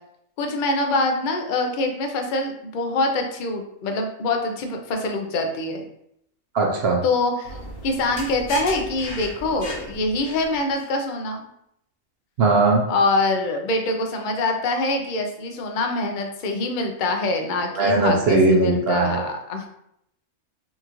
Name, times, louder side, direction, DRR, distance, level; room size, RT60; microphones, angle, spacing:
voice 1, 0.4-5.8 7.0-7.6 7.8-11.5 12.9-19.7, left 2 dB, 65° left, 3 dB, 0.5 m, -24 dB
voice 2, 6.5-7.0 12.4-12.8 17.8-19.2, right 2 dB, 60° right, 0 dB, 0.7 m, -19 dB
sound 1, 7.4-10.8, left 1 dB, 85° left, 1.6 m, -36 dB
5.5 x 2.4 x 2.9 m, 0.76 s
omnidirectional pair, 1.5 m